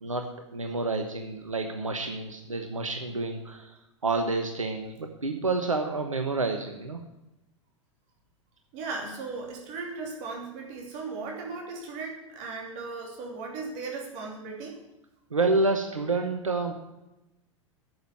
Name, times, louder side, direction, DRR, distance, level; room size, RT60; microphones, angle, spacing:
voice 1, 0.0-3.7 4.0-7.0 15.3-16.7, right 3 dB, 85° right, 5 dB, 1.1 m, -29 dB
voice 2, 8.7-14.8, right 4 dB, 45° right, 0 dB, 3.0 m, -37 dB
9.3 x 7.3 x 9.2 m, 0.94 s
figure-of-eight pair, 90°, 17 cm